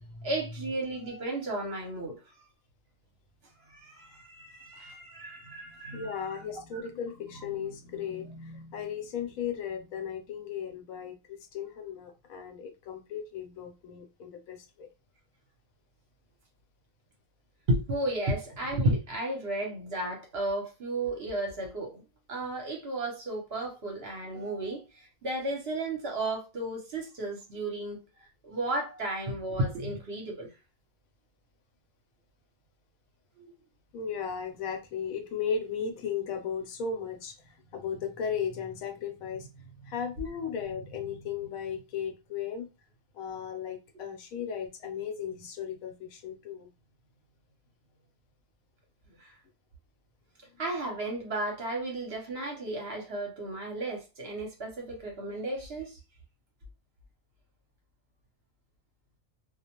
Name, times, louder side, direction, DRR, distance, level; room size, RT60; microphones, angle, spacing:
voice 1, 0.2-2.1 3.7-6.4 6.7-6.9 17.7-22.0 22.3-28.0 28.4-30.5 33.4-33.5 50.6-56.0, right 1 dB, 55° right, 0.8 m, -33 dB
voice 2, 5.8-14.9 33.9-42.7 43.1-46.7, left 7 dB, 75° left, 1.0 m, -36 dB
2.4 x 2.0 x 2.8 m
omnidirectional pair, 1.5 m